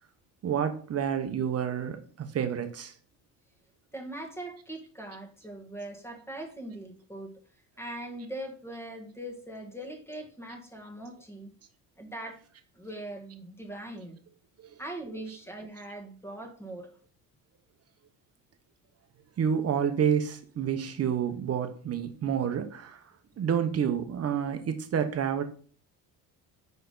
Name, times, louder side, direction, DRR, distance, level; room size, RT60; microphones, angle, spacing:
voice 1, 0.4-2.9 15.1-15.4 19.4-23.0 23.4-25.4, right 8 dB, 40° right, 7 dB, 1.1 m, -29 dB
voice 2, 3.9-7.3 7.8-11.5 12.0-12.4 12.7-14.2 14.8-17.0, right 1 dB, 5° left, 1 dB, 1.6 m, -41 dB
5.3 x 4.7 x 4.0 m, 0.44 s
cardioid pair, 105°, 38 cm